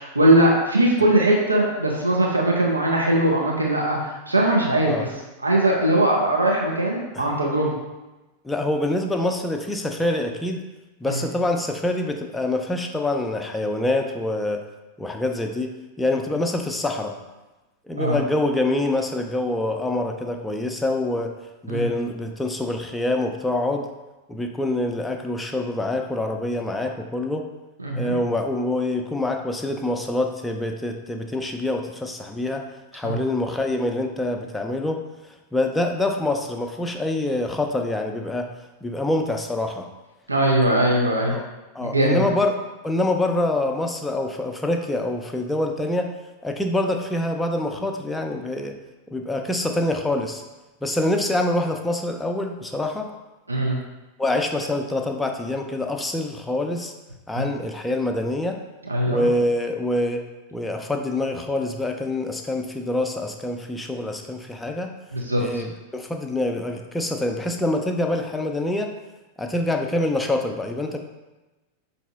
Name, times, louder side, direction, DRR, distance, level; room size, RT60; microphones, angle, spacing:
voice 1, 0.0-4.9 5.4-7.7 11.1-11.2 18.0-18.2 21.7-21.9 27.8-28.1 33.0-33.2 40.3-41.3 41.8-42.2 53.5-53.8 57.4-57.5 58.9-59.2 65.1-65.6, right 1 dB, 80° right, -2 dB, 0.5 m, -20 dB
voice 2, 8.4-10.6 11.0-14.6 15.0-17.2 17.9-21.3 21.6-23.9 24.3-27.4 27.9-32.6 32.9-35.0 35.5-38.5 38.8-39.9 41.3-41.5 41.7-42.5 42.8-46.1 46.4-48.7 49.1-50.4 50.8-53.1 54.2-56.9 57.3-58.6 59.1-60.2 60.5-64.9 65.4-68.9 69.4-71.0, left 1 dB, 5° left, 3 dB, 0.4 m, -25 dB
5.4 x 2.6 x 2.3 m, 1.1 s
figure-of-eight pair, 90°, 0 cm